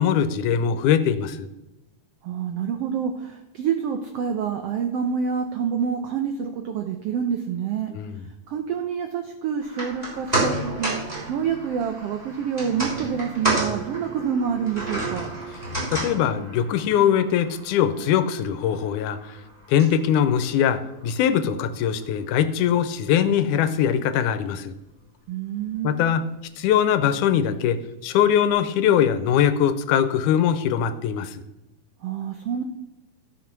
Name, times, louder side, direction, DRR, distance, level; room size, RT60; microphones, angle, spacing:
voice 1, 0.0-1.5 7.9-8.2 15.9-19.2 19.7-24.7 25.8-26.2 26.6-27.8 28.0-31.4, left 9 dB, 80° left, 11 dB, 2.1 m, -21 dB
voice 2, 2.2-7.9 8.5-10.9 11.3-15.3 25.3-26.0 32.0-32.6, right 7 dB, 90° right, 6 dB, 1.3 m, -27 dB
sound 1, 9.6-22.0 22.3-22.4, right 2 dB, 10° right, 3.2 m, -31 dB
13.0 x 5.7 x 5.9 m, 0.98 s
omnidirectional pair, 3.7 m